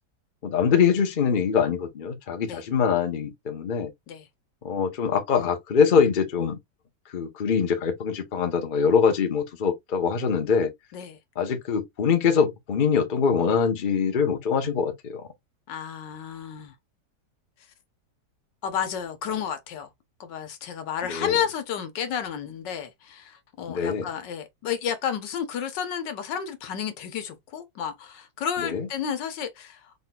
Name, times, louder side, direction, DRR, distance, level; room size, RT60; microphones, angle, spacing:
voice 1, 0.4-3.9 4.6-6.6 7.1-10.7 11.4-15.2 21.1-21.3 23.7-24.1 28.6-28.9, left 6 dB, 40° left, 0.8 m, -23 dB
voice 2, 15.7-16.7 18.6-19.9 20.2-29.9, left 8 dB, 80° left, 1.5 m, -31 dB
4.2 x 4.0 x 2.3 m
omnidirectional pair, 1.9 m